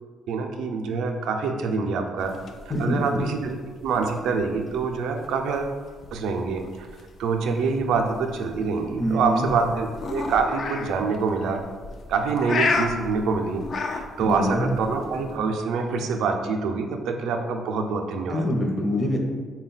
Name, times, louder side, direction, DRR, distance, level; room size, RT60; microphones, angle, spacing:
voice 1, 0.3-2.3 2.8-5.8 6.1-6.9 7.2-11.6 12.1-18.4, right 4 dB, 85° right, 4 dB, 0.4 m, -26 dB
sound 1, 2.2-15.4, left 3 dB, 55° left, 0.3 m, -33 dB
voice 2, 2.7-3.2 9.0-9.5 14.2-14.7 18.3-19.2, equal, 20° left, 1 dB, 0.6 m, -25 dB
3.9 x 2.2 x 3.9 m, 1.5 s
cardioid pair, 90°, 0 cm